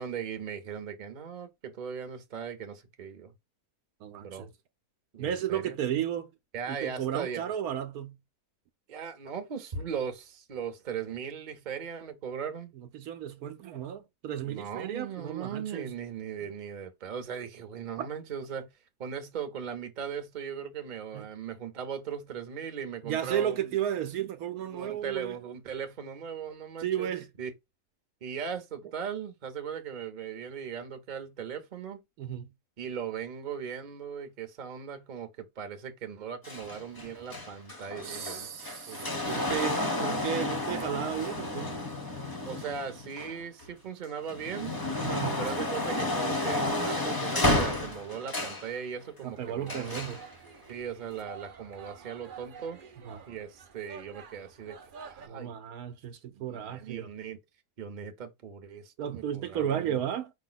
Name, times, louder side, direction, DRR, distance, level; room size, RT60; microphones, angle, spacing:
voice 1, 0.0-3.3 4.2-4.5 5.1-5.8 6.5-7.5 8.9-12.7 14.4-18.7 19.0-23.7 24.6-27.1 27.4-27.5 28.2-32.0 32.8-38.5 38.9-39.3 42.5-44.8 45.4-50.0 50.7-52.8 53.3-55.5 56.3-57.4 57.8-60.0, right 7 dB, 35° right, 0.8 m, -38 dB
voice 2, 4.0-4.5 5.2-6.3 6.7-8.2 12.9-15.9 18.0-18.1 21.1-21.3 23.0-25.4 26.8-27.3 32.2-32.5 38.0-41.7 45.0-45.4 49.2-50.2 53.1-53.2 55.3-57.1 59.0-60.3, right 10 dB, 75° right, 1.1 m, -33 dB
sound 1, 36.4-43.6 44.1-48.7 49.7-50.2 51.1-51.2, left 2 dB, 25° left, 0.5 m, -31 dB
sound 2, 49.3-55.3, right 6 dB, 60° right, 0.5 m, -49 dB
5.2 x 2.3 x 3.9 m
omnidirectional pair, 1.7 m